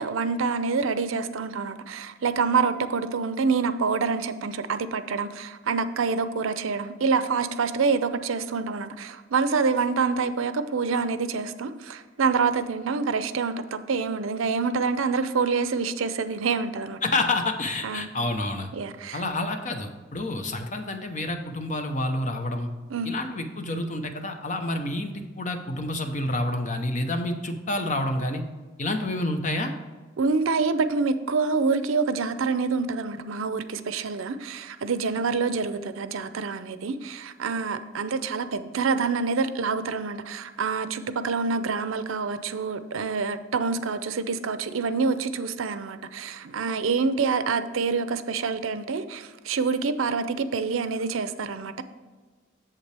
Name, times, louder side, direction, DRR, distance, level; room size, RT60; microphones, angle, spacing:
voice 1, 0.0-17.0 17.8-18.1 18.7-19.2 22.9-23.1 30.2-51.8, right 4 dB, 80° right, 11 dB, 0.5 m, -26 dB
voice 2, 17.0-18.7 19.1-22.7 23.0-28.4 28.8-29.7, left 2 dB, 35° left, 5 dB, 0.8 m, -28 dB
8.2 x 7.2 x 3.4 m, 1.4 s
head